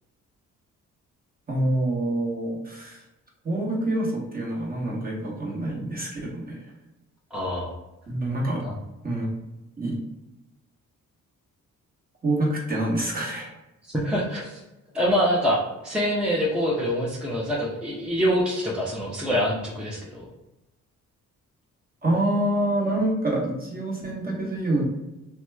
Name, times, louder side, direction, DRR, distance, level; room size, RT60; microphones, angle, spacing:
voice 1, 1.5-3.0 3.4-6.6 8.1-8.6 9.0-9.3 9.8-10.0 12.2-13.5 22.0-24.8, right 1 dB, 25° right, -3 dB, 1.2 m, -26 dB
voice 2, 7.3-7.8 8.6-8.7 13.9-14.6 14.9-20.3, equal, 5° right, -5 dB, 0.7 m, -25 dB
2.9 x 2.2 x 3.4 m, 0.98 s
cardioid pair, 70°, 34 cm